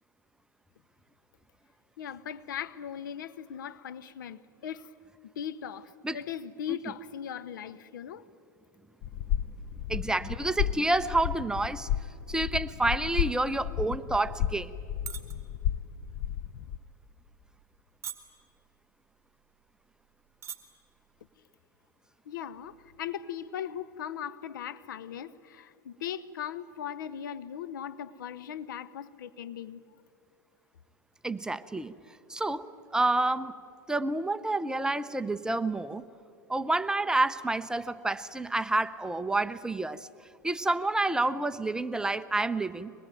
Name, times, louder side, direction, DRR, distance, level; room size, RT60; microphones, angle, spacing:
voice 1, 2.0-4.9 5.4-8.3 22.3-29.8, left 9 dB, 75° left, 0.9 m, -39 dB
sound 1, 9.0-16.8, left 10 dB, 50° left, 0.7 m, -33 dB
voice 2, 9.9-11.9 12.3-14.7 31.2-31.9 32.3-33.5 33.9-36.0 36.5-40.1 40.4-42.9, right 2 dB, 5° right, 0.7 m, -29 dB
sound 2, 15.1-15.3 15.7-16.0 16.6-16.8 17.5-17.8 18.0-18.5 19.3-19.4 19.6-19.7 20.3-20.6 20.9-21.2, right 9 dB, 25° right, 2.1 m, -39 dB
23.5 x 20.5 x 9.2 m
hypercardioid pair, 105°, 11 cm